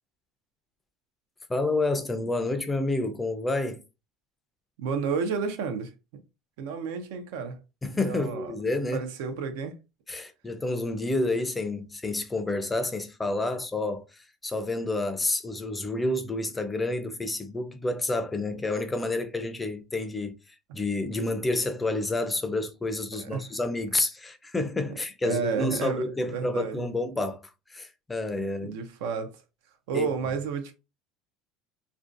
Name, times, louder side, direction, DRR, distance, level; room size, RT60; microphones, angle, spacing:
voice 1, 1.5-3.8 7.8-9.1 10.1-20.3 20.7-27.4 27.7-28.7 29.9-30.1, left 2 dB, 10° left, 0.3 m, -29 dB
voice 2, 4.8-6.2 6.6-7.6 7.9-8.5 8.9-9.7 23.1-23.4 25.2-26.0 26.3-26.9 28.6-29.3 29.9-30.7, right 5 dB, 85° right, 0.5 m, -31 dB
2.5 x 2.1 x 2.5 m
cardioid pair, 140°, 0 cm